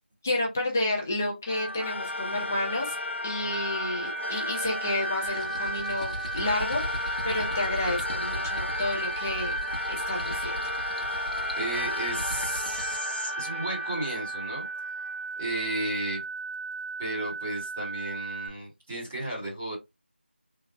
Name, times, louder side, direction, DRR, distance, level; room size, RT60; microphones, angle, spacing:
voice 1, 0.2-2.9 3.2-9.5 9.9-10.5, left 2 dB, 10° left, -1 dB, 0.6 m, -30 dB
sound 1, 1.5-15.2, left 2 dB, 80° left, 0.4 m, -34 dB
sound 2, 3.5-18.5, right 3 dB, 85° right, 0.8 m, -36 dB
sound 3, 5.2-13.1, left 1 dB, 40° left, 1.0 m, -39 dB
voice 2, 11.1-14.7 15.4-16.2 17.0-19.8, right 1 dB, 10° right, -6 dB, 0.9 m, -34 dB
3.7 x 2.1 x 2.4 m, 0.21 s
figure-of-eight pair, 175°, 6 cm